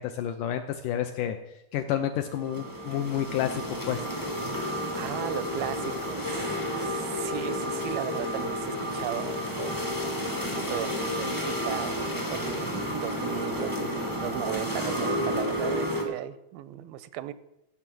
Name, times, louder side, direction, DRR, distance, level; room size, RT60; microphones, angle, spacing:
voice 1, 0.0-1.4 1.7-4.1, left 10 dB, 80° left, 7 dB, 1.9 m, -30 dB
sound 1, 2.3-16.0, equal, 30° left, 0.4 m, -31 dB
voice 2, 5.0-17.3, right 12 dB, 85° right, 15 dB, 2.4 m, -37 dB
15.0 x 6.7 x 6.1 m, 0.87 s
omnidirectional pair, 4.3 m